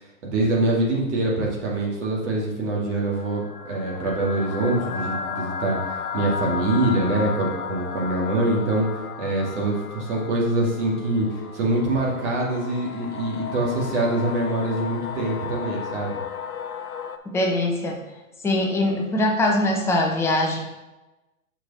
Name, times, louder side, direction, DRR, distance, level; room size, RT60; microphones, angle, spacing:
voice 1, 0.2-8.9 9.2-16.2, right 2 dB, 55° right, -3 dB, 2.4 m, -24 dB
sound 1, 2.9-17.2, left 6 dB, 85° left, 0.9 m, -34 dB
voice 2, 17.3-18.0 18.4-20.6, left 1 dB, 5° left, 0 dB, 0.7 m, -22 dB
6.6 x 4.8 x 4.2 m, 1.1 s
hypercardioid pair, 130°, 43 cm